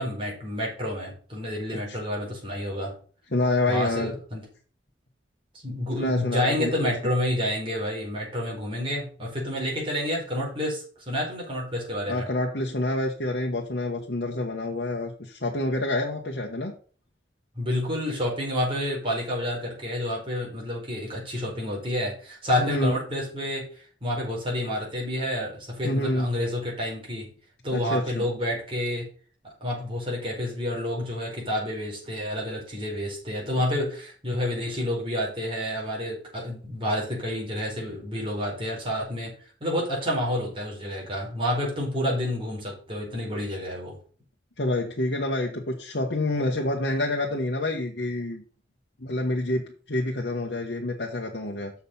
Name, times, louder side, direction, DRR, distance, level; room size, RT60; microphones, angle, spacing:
voice 1, 0.0-2.9 3.7-4.5 5.6-12.3 17.5-27.3 27.6-29.1 29.4-39.3 39.6-44.0, left 1 dB, 30° right, -3 dB, 4.5 m, -29 dB
voice 2, 3.3-4.1 6.0-6.9 12.1-16.7 22.6-22.9 25.8-26.3 27.7-28.3 44.6-48.4 49.0-51.7, left 2 dB, 65° left, -1 dB, 1.3 m, -27 dB
7.0 x 6.5 x 5.6 m, 0.41 s
head